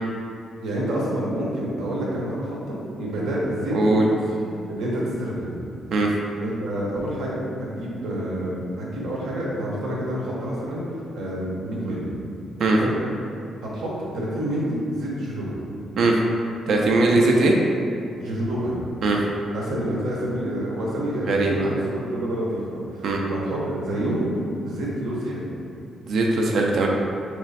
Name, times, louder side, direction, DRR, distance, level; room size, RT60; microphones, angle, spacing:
voice 1, 0.6-5.6 6.4-10.8 11.1-12.1 12.8-12.9 13.6-15.6 17.0-17.2 18.2-18.7 19.5-24.3 24.6-25.5, right 1 dB, 80° right, -5 dB, 1.0 m, -28 dB
voice 2, 3.7-4.0 5.9-6.1 12.6-12.8 16.0-16.1 16.7-17.5 19.0-19.2 21.3-21.7 23.0-23.2 26.1-26.9, right 2 dB, 60° right, 0 dB, 0.4 m, -20 dB
3.1 x 3.1 x 4.1 m, 2.7 s
cardioid pair, 175°, 0 cm